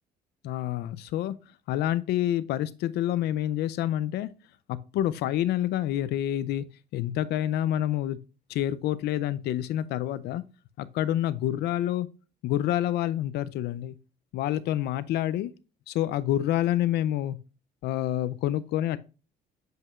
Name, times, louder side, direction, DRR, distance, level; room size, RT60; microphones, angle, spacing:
voice 1, 0.4-1.4 1.7-4.3 4.7-6.6 6.9-8.2 8.5-10.4 10.8-12.1 12.4-14.0 14.3-15.5 15.9-17.4 17.8-19.0, left 12 dB, 75° left, 0.5 m, -28 dB
7.6 x 5.3 x 2.4 m
cardioid pair, 110°, 17 cm